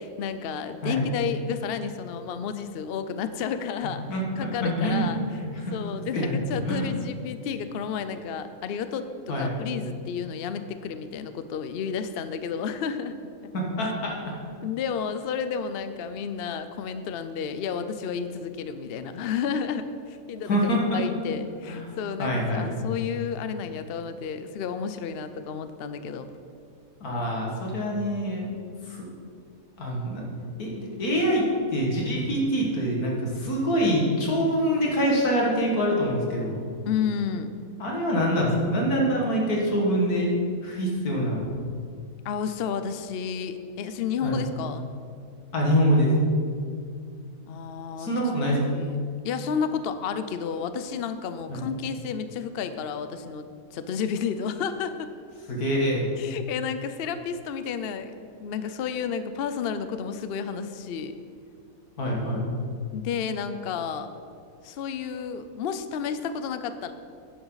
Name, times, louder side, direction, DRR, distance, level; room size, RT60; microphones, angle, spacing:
voice 1, 0.0-5.2 5.7-13.5 14.6-26.3 36.8-37.5 42.2-44.9 47.5-48.1 48.7-49.0 49.2-55.1 56.2-61.2 62.9-64.1 64.6-66.9, left 6 dB, 65° left, 10 dB, 0.6 m, -31 dB
voice 2, 4.6-5.5 6.1-6.3 6.6-6.8 9.3-9.5 13.5-14.1 20.5-21.0 21.7-21.8 22.2-22.7 27.0-28.5 28.9-29.1 29.8-30.2 30.6-31.4 31.7-36.6 37.8-40.3 40.6-41.4 44.2-44.4 45.5-46.1 48.0-48.6 51.5-51.6 55.5-56.0 62.0-62.4, equal, 85° left, -2 dB, 2.4 m, -25 dB
10.5 x 10.5 x 4.0 m, 2.3 s
omnidirectional pair, 1.6 m